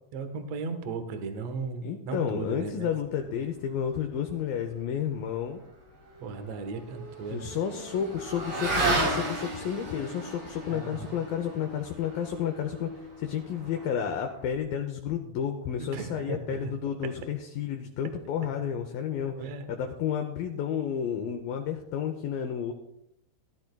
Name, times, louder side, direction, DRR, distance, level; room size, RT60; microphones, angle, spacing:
voice 1, 0.1-2.9 6.2-7.5 10.7-11.2 15.8-16.7 19.3-19.7, right 4 dB, 65° right, 7 dB, 1.7 m, -36 dB
voice 2, 1.8-5.6 7.3-12.9 13.2-19.3 19.7-22.7, left 8 dB, 75° left, 5 dB, 2.2 m, -31 dB
Motorcycle / Accelerating revving vroom, 5.8-14.6, right 2 dB, 40° right, 3.3 m, -34 dB
16.5 x 13.5 x 2.3 m, 0.81 s
omnidirectional pair, 4.7 m